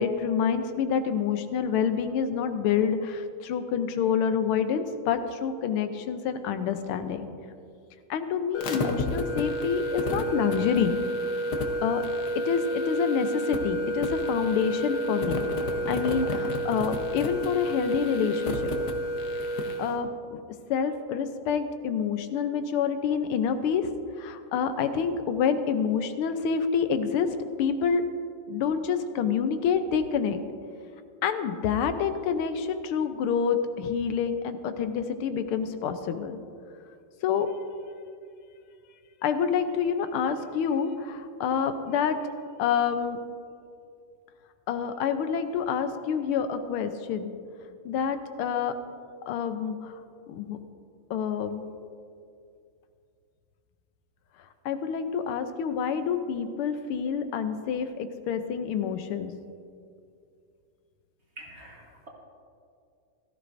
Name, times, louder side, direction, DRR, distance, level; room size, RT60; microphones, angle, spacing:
voice 1, 0.0-7.3 8.1-10.9 11.8-12.0 12.4-15.5 15.9-18.7 19.8-20.4 20.7-23.9 24.2-27.3 27.6-28.0 28.5-30.4 31.2-36.4 37.2-37.5 39.2-42.2 42.6-43.2 44.7-47.3 47.8-48.7 49.3-50.0 50.3-50.6 51.1-51.6 54.6-59.3, left 7 dB, 90° left, 9 dB, 1.6 m, -27 dB
sound 1, 8.5-19.9, equal, 60° left, 1.3 m, -30 dB
voice 2, 61.4-62.1, right 1 dB, 35° right, -1 dB, 1.5 m, -46 dB
16.0 x 13.5 x 2.6 m, 2.4 s
omnidirectional pair, 2.3 m